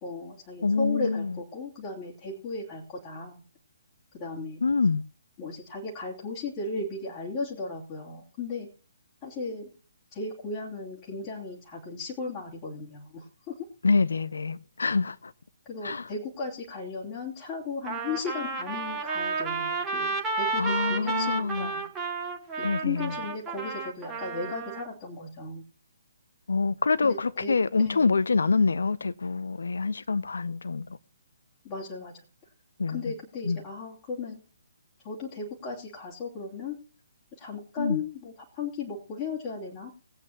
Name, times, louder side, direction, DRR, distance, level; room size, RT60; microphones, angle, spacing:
voice 1, 0.0-3.4 4.1-4.6 5.4-8.7 9.2-9.7 10.1-13.5 15.7-21.8 22.6-25.6 27.0-27.5 27.8-28.2 31.6-32.1 32.9-34.4 35.0-36.8 37.4-39.9, left 3 dB, 30° left, 2.9 m, -36 dB
voice 2, 0.6-1.4 4.6-5.0 13.8-15.3 15.8-16.1 20.6-21.7 22.6-23.2 26.5-30.9 32.8-33.1 33.4-33.6 37.8-38.0, left 4 dB, 65° left, 0.7 m, -26 dB
Trumpet, 17.9-24.9, right 4 dB, 10° right, 1.5 m, -31 dB
20.5 x 8.6 x 2.9 m
figure-of-eight pair, 135°, 0 cm